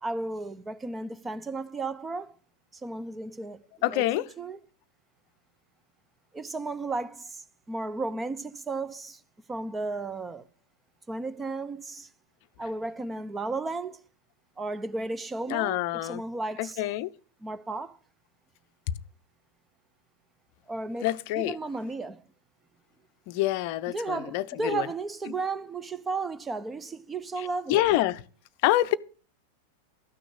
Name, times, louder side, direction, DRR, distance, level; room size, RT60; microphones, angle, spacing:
voice 1, 0.0-2.3 2.7-4.1 4.4-4.6 6.3-7.4 7.7-9.2 9.5-10.5 11.1-12.1 12.6-14.0 14.6-16.8 17.4-18.0 20.7-22.2 23.9-28.0, right 3 dB, 15° right, 0.9 m, -34 dB
voice 2, 3.8-4.3 15.5-16.2 16.6-17.1 21.0-21.5 23.3-24.9 27.7-28.2 28.6-28.9, left 15 dB, 45° left, 0.7 m, -26 dB
13.5 x 6.2 x 8.2 m
figure-of-eight pair, 90°, 0 cm